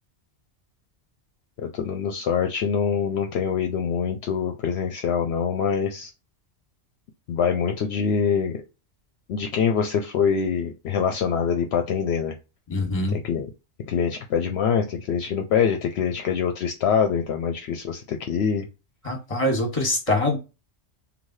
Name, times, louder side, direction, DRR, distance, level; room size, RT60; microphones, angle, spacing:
voice 1, 1.6-6.1 7.3-8.6 9.3-12.3 13.1-13.5 13.8-18.7, left 7 dB, 70° left, 4 dB, 0.8 m, -24 dB
voice 2, 12.7-13.2 19.0-20.4, left 1 dB, 30° left, 3 dB, 1.3 m, -24 dB
3.2 x 2.8 x 2.6 m, 0.27 s
omnidirectional pair, 1.2 m